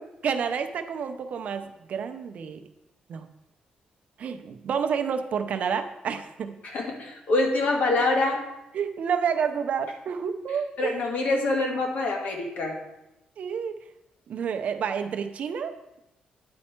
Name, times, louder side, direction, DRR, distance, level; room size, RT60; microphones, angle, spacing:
voice 1, 0.2-2.6 3.1-3.3 4.2-6.6 8.7-10.9 13.4-13.8 14.3-15.7, right 7 dB, 60° right, 8 dB, 0.6 m, -29 dB
voice 2, 6.6-8.4 10.8-12.8, left 2 dB, 65° left, 1 dB, 1.5 m, -25 dB
9.5 x 4.3 x 4.4 m, 0.91 s
cardioid pair, 135°, 3 cm